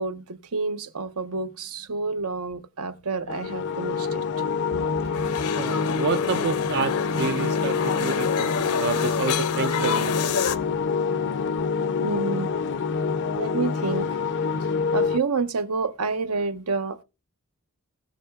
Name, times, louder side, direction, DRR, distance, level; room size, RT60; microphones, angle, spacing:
voice 1, 0.0-4.2 12.0-12.5 13.4-14.2 14.6-17.0, right 4 dB, 80° right, 0.9 m, -29 dB
sound 1, 3.3-15.2, left 5 dB, 50° left, 0.4 m, -26 dB
voice 2, 5.0-10.6, right 6 dB, 50° right, 0.4 m, -30 dB
sound 2, 5.1-10.6, left 6 dB, 85° left, 0.7 m, -29 dB
19.5 x 6.6 x 2.3 m
head